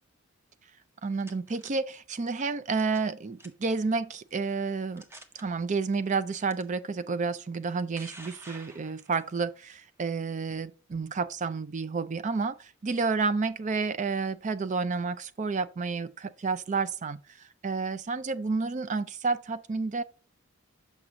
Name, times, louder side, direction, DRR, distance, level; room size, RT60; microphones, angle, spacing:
sound 1, 0.8-1.7 2.7-3.1 3.4-3.7 4.4-4.5 5.0-5.4 6.5-6.6 7.5-9.3, right 1 dB, 10° right, 0.8 m, -49 dB
voice 1, 1.0-5.0 5.3-20.0, right 4 dB, 35° right, 0.4 m, -30 dB
6.5 x 6.0 x 2.8 m
head